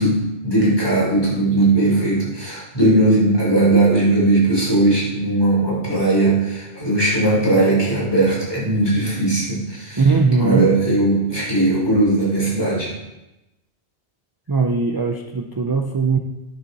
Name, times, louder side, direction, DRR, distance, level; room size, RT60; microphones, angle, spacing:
voice 1, 0.0-10.0 10.4-12.9, right 2 dB, 20° left, -7 dB, 3.9 m, -18 dB
voice 2, 10.0-10.7 14.5-16.2, right 4 dB, 35° right, 4 dB, 0.3 m, -19 dB
9.8 x 7.0 x 4.1 m, 0.98 s
omnidirectional pair, 1.1 m